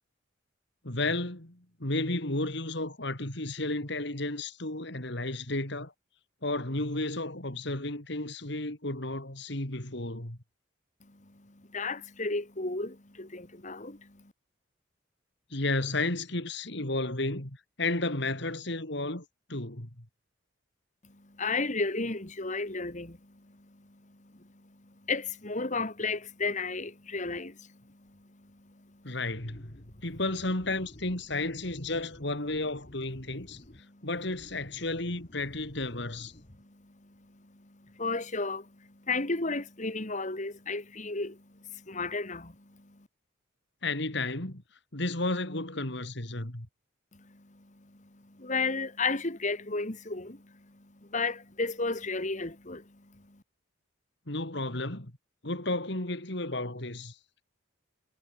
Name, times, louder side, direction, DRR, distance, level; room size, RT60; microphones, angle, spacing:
voice 1, 0.8-5.9 6.4-10.4 15.5-19.2 19.5-20.1 29.0-29.8 30.0-33.6 34.0-36.3 43.8-44.6 44.9-46.7 54.3-55.1 55.4-57.2, left 2 dB, 60° left, 3.7 m, -32 dB
voice 2, 11.0-14.3 21.0-29.2 29.5-29.6 33.5-34.1 36.6-43.1 47.1-53.4, left 3 dB, 40° left, 2.2 m, -35 dB
head